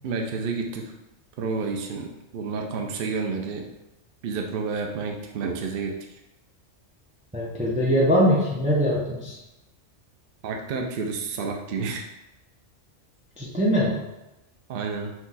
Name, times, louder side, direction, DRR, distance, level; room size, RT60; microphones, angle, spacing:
voice 1, 0.0-0.8 1.4-3.7 4.2-5.9 10.4-12.0 14.7-15.1, right 4 dB, 55° right, 2 dB, 0.7 m, -30 dB
voice 2, 7.3-9.4 13.4-14.0, equal, 10° right, -5 dB, 0.5 m, -22 dB
4.5 x 2.4 x 3.9 m, 0.96 s
omnidirectional pair, 1.3 m